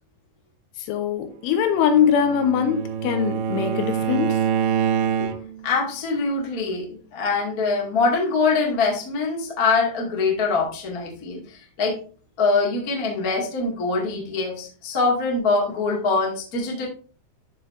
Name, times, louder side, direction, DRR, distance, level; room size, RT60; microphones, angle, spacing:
voice 1, 0.9-4.4, left 8 dB, 80° left, 7 dB, 3.3 m, -22 dB
Bowed string instrument, 1.7-5.7, right 8 dB, 85° right, 3.0 m, -25 dB
voice 2, 5.6-12.0 12.4-16.9, left 4 dB, 45° left, -2 dB, 1.1 m, -23 dB
13.0 x 4.5 x 2.6 m, 0.38 s
omnidirectional pair, 5.6 m